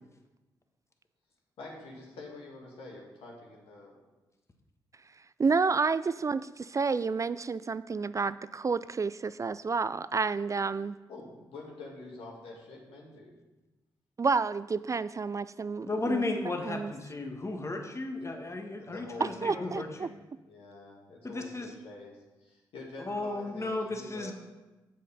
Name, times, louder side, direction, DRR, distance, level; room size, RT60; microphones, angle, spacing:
voice 1, 1.6-3.9 11.1-13.3 18.8-20.2 20.5-24.3, left 2 dB, 75° left, -2 dB, 2.3 m, -46 dB
voice 2, 5.4-11.0 14.2-16.2 16.7-16.9 19.4-20.1, right 4 dB, 35° right, 15 dB, 0.3 m, -30 dB
voice 3, 15.9-20.1 21.2-21.7 23.0-24.3, left 2 dB, 30° left, 4 dB, 1.4 m, -34 dB
7.6 x 6.5 x 5.5 m, 1.1 s
hypercardioid pair, 45°, 10 cm